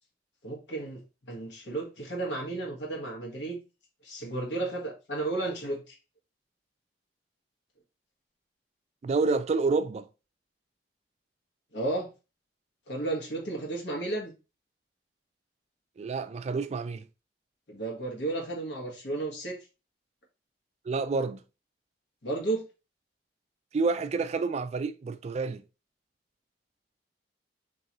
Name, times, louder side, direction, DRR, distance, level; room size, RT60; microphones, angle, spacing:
voice 1, 0.4-3.6 4.0-6.0 11.7-12.1 12.9-14.3 17.7-19.6 22.2-22.6, right 2 dB, 90° left, 1.4 m, -33 dB
voice 2, 9.0-10.1 16.0-17.0 20.9-21.4 23.7-25.6, right 4 dB, 40° right, 0.3 m, -28 dB
3.8 x 3.0 x 2.9 m
head